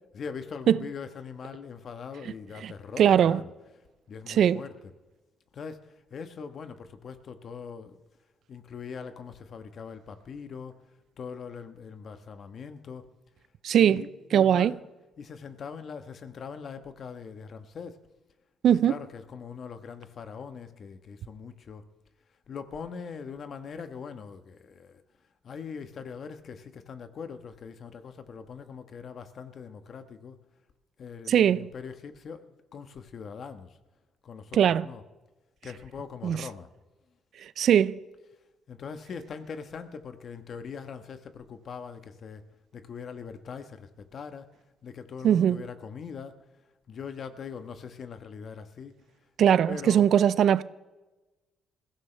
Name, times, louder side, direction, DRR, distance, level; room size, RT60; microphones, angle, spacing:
voice 1, 0.1-4.9 5.5-8.0 8.5-10.8 11.2-13.1 13.8-14.8 15.2-18.0 18.7-21.8 22.5-25.0 25.4-30.4 31.0-33.8 34.2-35.0 35.6-36.7 38.7-42.4 42.7-44.5 44.8-46.3 46.9-48.9 49.7-50.1, left 6 dB, 55° left, 1.3 m, -41 dB
voice 2, 3.0-3.4 4.4-4.6 13.6-14.0 14.3-14.7 18.6-18.9 31.3-31.7 34.6-34.8 36.2-36.4 37.6-38.0 45.2-45.6 49.4-50.6, right 9 dB, 70° right, 0.5 m, -20 dB
21.0 x 16.0 x 3.3 m
cardioid pair, 90°, 0 cm